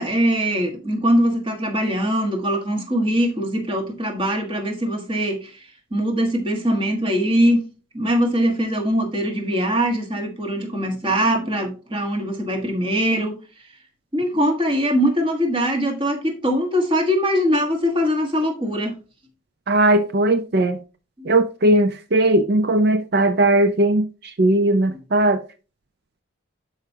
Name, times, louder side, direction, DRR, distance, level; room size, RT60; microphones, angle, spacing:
voice 1, 0.0-5.6 5.9-7.6 7.9-13.4 14.1-19.0 21.2-21.3, equal, 25° right, 1.4 m, -22 dB
voice 2, 19.7-20.8 21.3-25.4, right 1 dB, 50° right, 0.5 m, -18 dB
11.5 x 4.8 x 2.8 m
head